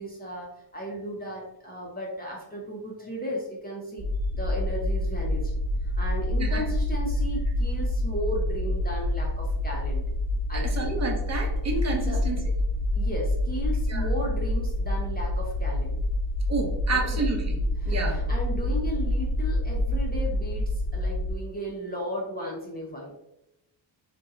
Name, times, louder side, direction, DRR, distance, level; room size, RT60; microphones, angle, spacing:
voice 1, 0.0-4.1 4.3-5.5 5.8-10.0 10.5-10.9 12.0-12.2 12.9-16.0 16.9-17.2 17.8-23.1, equal, 20° left, -3 dB, 0.7 m, -35 dB
sound 1, 4.0-21.3, left 1 dB, ahead, 1.2 m, -27 dB
voice 2, 10.5-12.4 13.9-14.1 16.5-17.6 17.9-18.2, right 3 dB, 35° right, 2 dB, 0.8 m, -30 dB
2.7 x 2.2 x 3.6 m, 0.86 s
cardioid pair, 95°, 48 cm